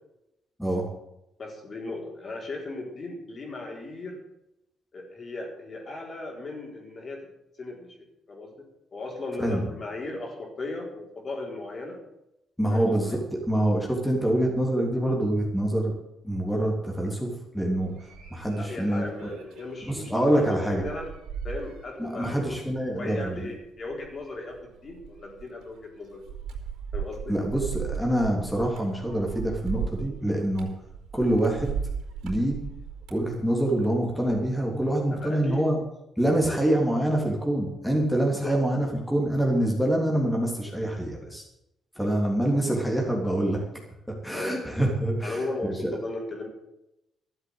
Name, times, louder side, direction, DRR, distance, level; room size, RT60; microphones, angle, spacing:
voice 1, 1.4-4.2 4.9-7.3 7.6-8.0 8.3-8.5 8.9-12.0 12.7-13.2 18.5-21.1 21.4-22.6 22.9-26.2 26.9-27.3 35.1-35.6 36.4-36.8 38.4-38.5 44.3-44.6 45.2-46.5, left 2 dB, 45° left, 0 dB, 4.3 m, -36 dB
voice 2, 12.6-13.2 13.5-15.9 16.2-17.9 18.3-19.0 19.9-20.8 22.0-23.5 27.3-30.7 31.1-31.7 32.2-32.6 33.1-35.8 36.2-41.4 42.0-43.6 44.2-45.9, right 1 dB, ahead, -1 dB, 3.2 m, -25 dB
sound 1, 17.8-34.5 34.8-35.3, right 7 dB, 80° right, 4.1 m, -38 dB
12.5 x 7.8 x 8.9 m, 0.86 s
cardioid pair, 90°, 0 cm